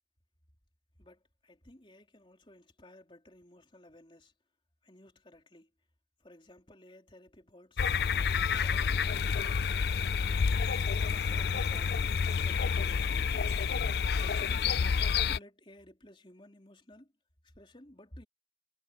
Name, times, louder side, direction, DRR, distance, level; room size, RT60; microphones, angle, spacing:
voice 1, 1.0-4.3 4.8-5.7 6.2-7.7 8.1-10.1 10.9-13.3 14.2-15.0 15.3-17.1 17.5-18.2, left 1 dB, 30° left, 3.4 m, -55 dB
sound 1, 7.8-15.4, left 6 dB, 65° left, 0.4 m, -29 dB
head